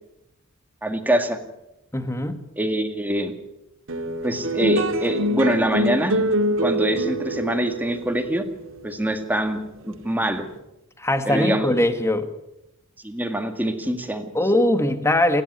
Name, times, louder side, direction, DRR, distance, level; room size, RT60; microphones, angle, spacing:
voice 1, 0.8-1.4 2.6-3.3 4.2-6.2 6.6-8.4 8.8-10.4 11.3-11.7 13.0-14.3, right 1 dB, 10° right, 6 dB, 2.0 m, -24 dB
voice 2, 1.9-2.4 11.0-12.3 14.3-15.4, left 1 dB, 15° left, 9 dB, 1.6 m, -21 dB
sound 1, 3.9-10.5, equal, 65° right, 2.4 m, -25 dB
28.5 x 10.5 x 9.6 m, 0.89 s
head